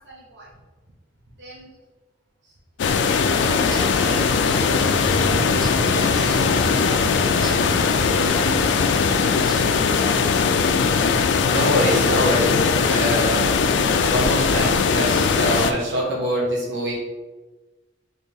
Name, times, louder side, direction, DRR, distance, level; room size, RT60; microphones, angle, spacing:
voice 1, 0.1-0.5 1.4-1.7 3.1-4.2 6.0-7.7 9.2-9.4, right 2 dB, 70° right, -7 dB, 1.1 m, -40 dB
sound 1, 2.8-15.7, left 5 dB, 80° left, 0.4 m, -20 dB
sound 2, 3.6-10.2, right 2 dB, 25° right, 0.4 m, -32 dB
voice 2, 11.1-16.9, right 1 dB, 85° right, -4 dB, 1.3 m, -25 dB
4.3 x 3.4 x 3.4 m, 1.2 s
head